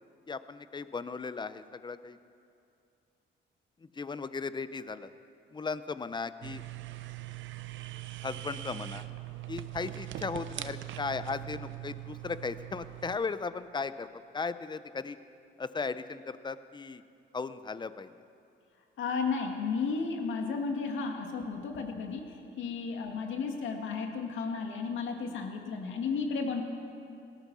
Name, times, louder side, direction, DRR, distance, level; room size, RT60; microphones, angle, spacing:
voice 1, 0.3-2.2 3.8-5.1 5.5-6.6 8.2-9.0 9.5-15.2 15.6-17.0 17.3-18.1 23.0-23.2, left 4 dB, 20° left, 13 dB, 0.6 m, -37 dB
sound 1, 6.4-13.2, right 15 dB, 75° right, 0.7 m, -41 dB
voice 2, 19.0-26.6, left 5 dB, 75° left, 3 dB, 2.1 m, -33 dB
18.0 x 13.0 x 6.2 m, 2.5 s
cardioid pair, 90°, 20 cm